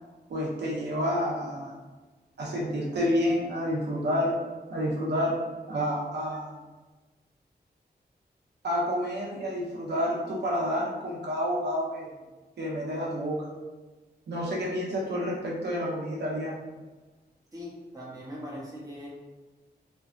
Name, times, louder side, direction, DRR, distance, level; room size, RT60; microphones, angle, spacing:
voice 1, 0.3-1.8 2.4-4.3 4.7-5.4 5.7-6.6 8.6-12.1 12.6-13.4 14.3-16.6, equal, 80° right, -4 dB, 0.6 m, -29 dB
voice 2, 17.5-19.1, equal, 20° right, -6 dB, 0.6 m, -40 dB
2.6 x 2.3 x 2.4 m, 1.2 s
wide cardioid pair, 165°, 17 cm